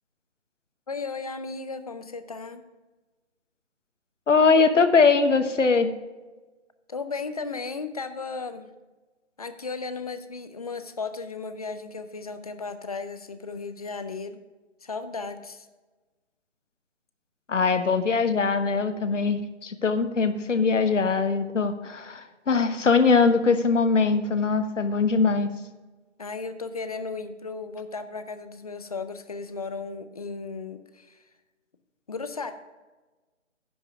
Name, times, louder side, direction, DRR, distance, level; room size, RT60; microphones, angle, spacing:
voice 1, 0.9-2.6 6.9-8.7 9.4-14.4 14.8-15.7 26.2-31.2 32.1-32.5, left 4 dB, 30° left, 10 dB, 0.5 m, -35 dB
voice 2, 4.3-5.9 17.5-25.5, left 4 dB, 85° left, 10 dB, 1.2 m, -22 dB
10.0 x 5.4 x 5.9 m, 1.2 s
figure-of-eight pair, 160°, 36 cm